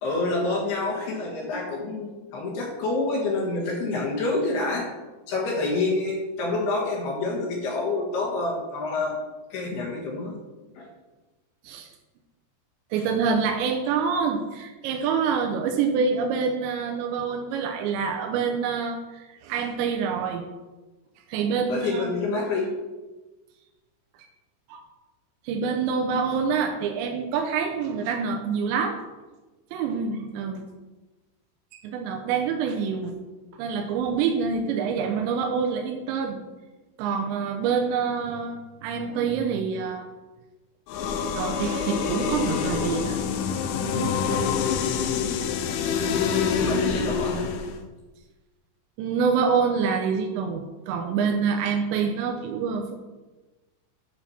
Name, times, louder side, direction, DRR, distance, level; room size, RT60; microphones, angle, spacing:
voice 1, 0.0-4.9 5.3-9.2 9.5-10.4 10.8-10.9 21.7-22.7 46.6-47.5, left 3 dB, 65° left, -3 dB, 3.2 m, -27 dB
voice 2, 12.9-20.4 21.3-22.1 24.2-24.3 24.7-24.8 25.4-29.0 29.7-30.6 31.7-33.1 33.6-36.4 37.0-40.1 41.4-43.2 43.5-43.6 43.9-44.5 49.0-52.9, right 6 dB, 85° right, 3 dB, 2.8 m, -26 dB
sound 1, 40.9-47.8, left 6 dB, 80° left, 3.1 m, -26 dB
10.0 x 6.2 x 4.2 m, 1.2 s
omnidirectional pair, 5.5 m